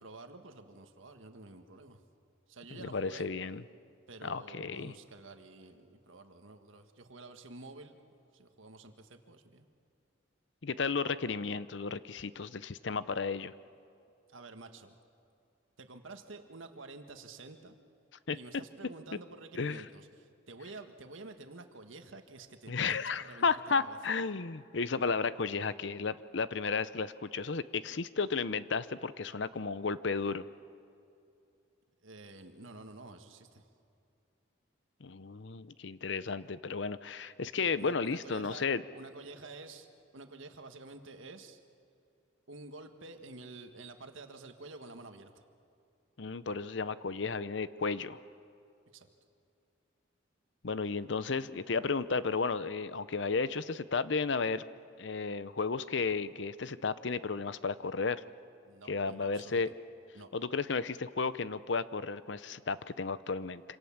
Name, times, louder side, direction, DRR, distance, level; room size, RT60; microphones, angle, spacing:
voice 1, 0.0-2.0 2.5-3.3 4.1-8.0 8.3-9.7 14.3-15.0 15.8-17.7 18.3-24.0 32.0-33.6 37.6-38.7 38.9-41.6 42.5-45.4 48.9-49.1 58.6-59.6 60.1-60.3, right 3 dB, 90° right, 7 dB, 1.7 m, -50 dB
voice 2, 2.8-3.6 4.2-4.9 10.6-13.5 18.3-18.4 19.5-19.8 22.7-30.5 35.0-38.8 46.2-48.2 50.6-54.6 55.0-58.2 58.9-59.7 60.3-63.6, left 4 dB, 70° left, 15 dB, 0.7 m, -33 dB
26.5 x 26.5 x 7.3 m, 2.6 s
head